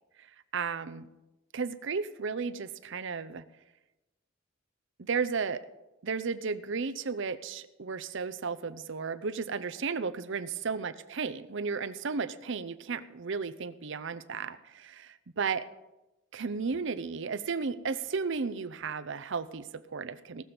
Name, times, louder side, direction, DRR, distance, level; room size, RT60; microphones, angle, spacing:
voice 1, 0.5-1.1 1.5-3.4 5.0-5.6 6.0-15.6 16.3-20.4, right 5 dB, 65° right, 14 dB, 0.7 m, -34 dB
18.0 x 7.0 x 6.0 m, 1.0 s
head